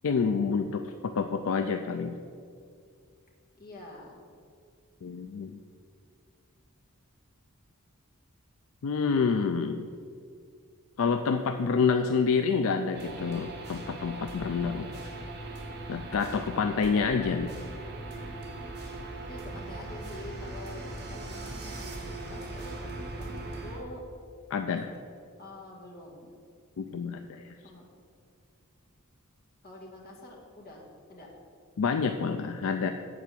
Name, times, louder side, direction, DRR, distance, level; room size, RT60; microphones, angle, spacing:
voice 1, 0.0-2.1 5.0-5.6 8.8-9.9 11.0-14.9 15.9-17.5 24.5-24.9 26.8-27.5 31.8-32.9, left 5 dB, 65° left, 7 dB, 0.4 m, -28 dB
voice 2, 3.6-4.3 11.9-12.1 19.3-24.0 25.4-26.3 27.6-27.9 29.6-31.3, left 1 dB, 45° left, -2 dB, 1.9 m, -46 dB
sound 1, 12.9-23.8, right 2 dB, 50° right, 1.5 m, -40 dB
8.2 x 4.7 x 7.4 m, 2.3 s
head